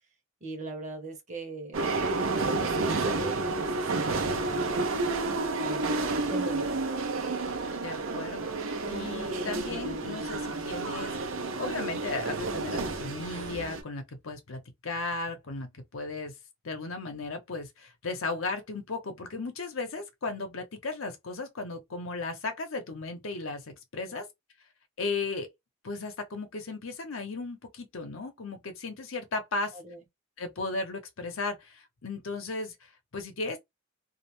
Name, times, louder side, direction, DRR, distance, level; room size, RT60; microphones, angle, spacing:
voice 1, 0.4-1.9 2.4-4.9 5.6-6.0 6.3-6.8 24.1-24.2 29.7-30.0, right 3 dB, 35° right, 0.9 m, -41 dB
IN Train door speech Dorogozhychi-Lukjanivska, 1.7-13.8, right 3 dB, 80° right, 0.6 m, -30 dB
voice 2, 7.8-11.2 11.6-16.4 16.6-24.3 25.0-25.5 25.8-29.8 30.4-33.6, left 3 dB, 75° left, 0.8 m, -36 dB
2.4 x 2.1 x 3.0 m
head